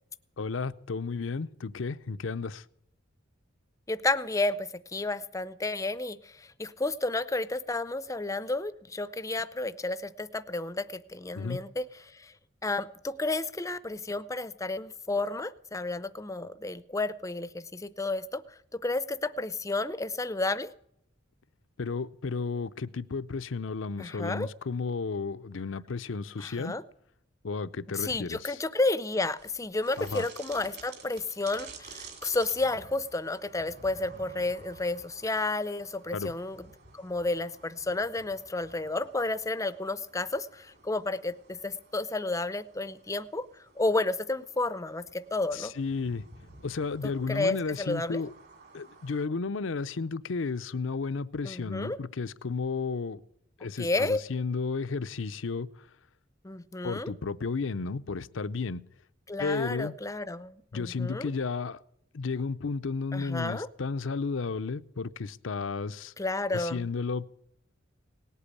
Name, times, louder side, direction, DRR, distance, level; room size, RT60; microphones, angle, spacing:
voice 1, 0.4-2.6 11.3-11.6 21.8-26.7 27.4-28.5 30.0-30.3 36.1-36.3 45.5-46.2 46.6-48.3 48.7-53.2 53.6-55.7 56.8-58.8 59.4-59.9 60.7-61.8 62.1-66.1 66.5-67.3, left 4 dB, 75° left, 0.6 m, -33 dB
voice 2, 3.9-12.3 12.6-18.4 18.7-20.7 24.0-24.5 26.4-26.8 27.9-43.5 43.8-45.7 47.0-48.2 51.4-52.0 53.8-54.2 56.4-57.1 59.3-61.3 63.1-63.7 66.2-66.9, left 2 dB, 15° left, 0.5 m, -31 dB
sound 1, 29.4-49.3, right 4 dB, 55° right, 2.8 m, -52 dB
18.5 x 8.3 x 8.4 m
head